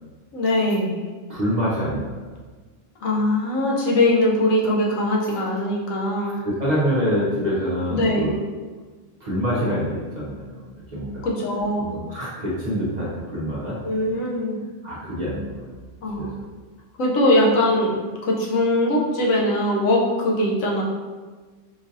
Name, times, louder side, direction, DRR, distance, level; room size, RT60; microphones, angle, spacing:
voice 1, 0.3-1.0 3.0-6.4 7.9-8.3 11.2-11.9 13.8-14.6 16.0-16.4 17.0-20.8, left 1 dB, 85° left, -2 dB, 1.1 m, -21 dB
voice 2, 1.3-2.2 6.1-8.4 9.2-10.6 10.9-11.3 11.8-13.8 14.8-15.7 16.2-16.3, equal, 45° right, -7 dB, 0.6 m, -26 dB
3.8 x 2.5 x 2.6 m, 1.4 s
omnidirectional pair, 1.4 m